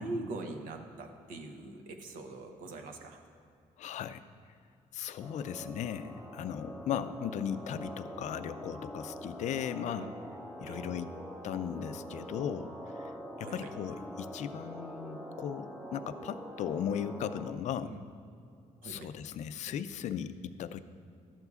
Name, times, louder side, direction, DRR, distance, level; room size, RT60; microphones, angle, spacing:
voice 1, 0.0-3.2 10.0-10.1 10.6-10.8 13.4-13.7 17.8-18.0 18.8-19.1, right 2 dB, 85° right, 5 dB, 0.8 m, -42 dB
voice 2, 3.8-4.2 4.9-10.1 10.6-11.1 11.4-12.7 13.0-13.1 13.4-17.9 18.8-20.8, left 9 dB, 60° left, 12 dB, 0.4 m, -37 dB
sound 1, 5.2-17.5, equal, ahead, 0.7 m, -44 dB
12.0 x 8.0 x 2.4 m, 2.5 s
cardioid pair, 115°, 14 cm